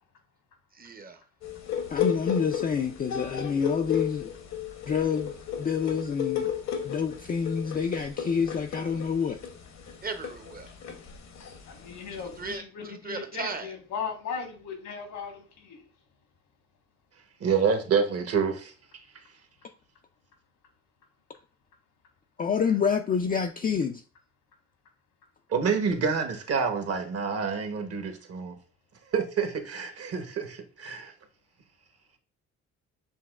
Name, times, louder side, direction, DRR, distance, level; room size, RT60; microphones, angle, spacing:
voice 1, 0.8-1.2 10.0-10.7 12.1-13.7, right 3 dB, 30° right, 0.7 m, -37 dB
sound 1, 1.4-12.5, left 9 dB, 65° left, 0.9 m, -33 dB
voice 2, 1.9-4.3 4.9-5.3 5.6-6.5 6.8-9.4 22.4-24.0, left 6 dB, 30° left, 0.4 m, -27 dB
voice 3, 11.7-15.8, left 6 dB, 80° left, 1.4 m, -37 dB
voice 4, 17.4-18.5 25.5-28.5 29.1-31.1, right 6 dB, 50° right, 1.0 m, -27 dB
7.0 x 2.9 x 2.3 m
cardioid pair, 90°, 30 cm